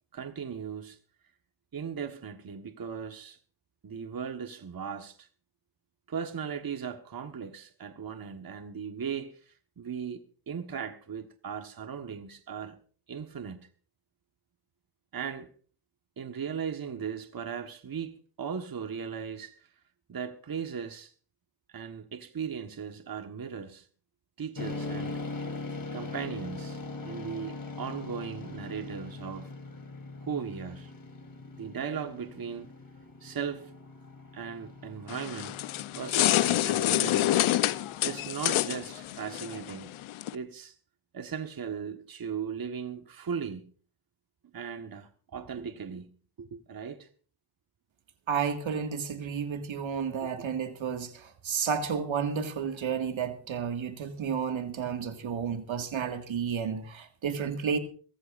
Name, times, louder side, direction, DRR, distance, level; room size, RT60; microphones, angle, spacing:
voice 1, 0.1-1.0 1.7-3.4 3.8-5.3 6.1-12.8 13.1-13.7 15.1-15.5 16.2-19.7 20.1-21.1 21.7-23.9 24.4-25.2 25.9-29.5 30.2-30.9 31.6-32.7 33.2-33.7 34.3-35.6 35.9-37.4 37.8-39.9 40.3-40.7 41.1-43.7 44.5-47.1, right 7 dB, 45° right, 1.5 m, -38 dB
sound 1, 24.6-40.0, left 3 dB, 40° left, 3.5 m, -42 dB
sound 2, 35.1-40.3, left 14 dB, 75° left, 0.8 m, -27 dB
voice 2, 48.3-57.8, right 7 dB, 65° right, 2.0 m, -31 dB
22.5 x 14.0 x 2.6 m
supercardioid pair, 40°, 50 cm